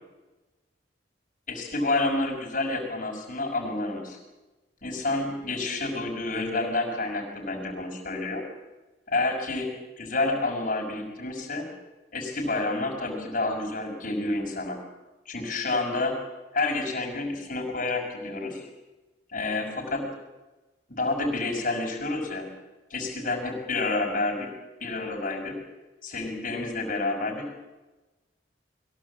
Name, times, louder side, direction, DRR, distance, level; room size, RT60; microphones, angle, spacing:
voice 1, 1.5-4.2 4.8-8.4 9.1-9.7 10.0-11.7 12.1-14.8 15.3-16.2 16.5-18.7 19.3-20.0 20.9-22.5 22.9-24.5 24.8-25.6 26.0-27.5, left 2 dB, 50° left, 1 dB, 6.0 m, -29 dB
22.5 x 17.0 x 8.6 m, 1.1 s
head